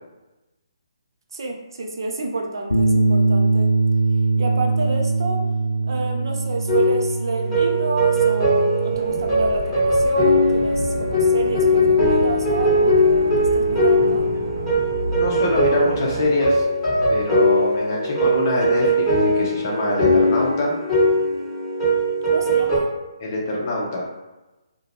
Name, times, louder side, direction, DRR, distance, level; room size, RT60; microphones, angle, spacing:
voice 1, 1.3-3.7 4.4-5.5 5.9-14.3 22.2-22.9, right 2 dB, 60° right, 2 dB, 0.4 m, -29 dB
Bass guitar, 2.7-9.0, right 3 dB, 85° left, 0.4 m, -21 dB
sound 1, 6.7-22.8, equal, 15° left, 1.2 m, -20 dB
sound 2, 8.9-16.3, right 1 dB, 35° right, 0.8 m, -32 dB
voice 2, 15.2-16.6 17.1-20.7 23.2-24.1, left 2 dB, 40° left, -3 dB, 0.7 m, -24 dB
2.3 x 2.2 x 3.0 m, 1.1 s
figure-of-eight pair, 140°, 3 cm